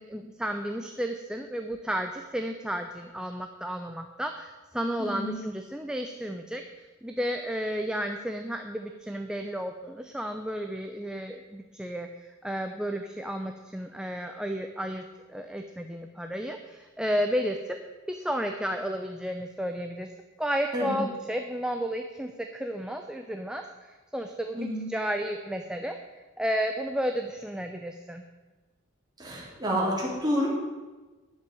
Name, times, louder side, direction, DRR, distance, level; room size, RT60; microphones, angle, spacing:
voice 1, 0.0-17.8 18.1-20.1 20.4-26.0 26.4-28.2, equal, 5° right, 4 dB, 0.6 m, -32 dB
voice 2, 29.2-30.5, equal, 20° right, -5 dB, 3.7 m, -29 dB
10.5 x 7.5 x 7.7 m, 1.2 s
head